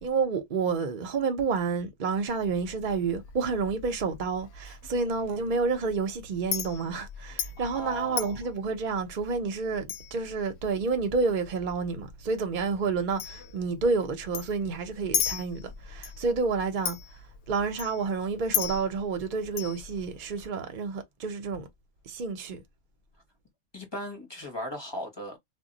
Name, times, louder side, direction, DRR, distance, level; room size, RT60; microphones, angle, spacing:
voice 1, 0.0-17.0 17.5-21.7 22.1-22.6, right 4 dB, 50° right, 0.6 m, -29 dB
Chink clink, 2.3-20.5, left 8 dB, 65° left, 0.7 m, -38 dB
voice 2, 7.6-8.4 23.7-25.4, left 1 dB, 25° left, 0.7 m, -37 dB
2.1 x 2.1 x 3.8 m
omnidirectional pair, 1.4 m